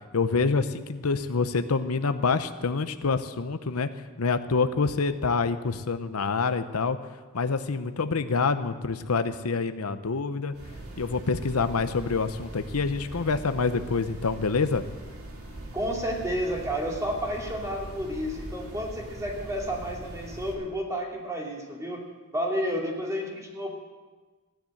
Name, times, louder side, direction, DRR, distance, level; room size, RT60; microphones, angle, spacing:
voice 1, 0.1-3.9 4.2-7.0 7.3-10.5 11.0-14.8, left 4 dB, 90° left, 10 dB, 0.8 m, -26 dB
sound 1, 10.5-20.5, right 1 dB, 85° right, 2.9 m, -41 dB
voice 2, 15.7-22.0 22.3-23.8, equal, 15° right, -1 dB, 2.8 m, -31 dB
16.0 x 10.5 x 7.7 m, 1.3 s
head